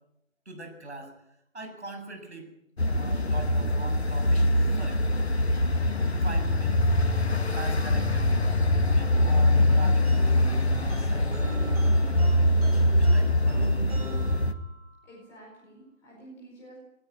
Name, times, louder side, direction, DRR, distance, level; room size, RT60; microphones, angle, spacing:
voice 1, 0.5-1.1 1.5-2.5 2.8-4.5 4.7-5.0 6.2-6.9 7.5-8.4 8.8-10.1 10.6-12.3 12.9-13.9, right 1 dB, 55° right, 4 dB, 7.8 m, -42 dB
sound 1, 2.8-14.5, left 1 dB, 50° left, 1.8 m, -23 dB
sound 2, 10.0-15.1, right 1 dB, 30° right, 7.3 m, -42 dB
voice 2, 15.1-16.8, right 1 dB, 5° left, -6 dB, 4.6 m, -49 dB
19.5 x 18.5 x 10.0 m, 0.80 s
figure-of-eight pair, 160°, 40 cm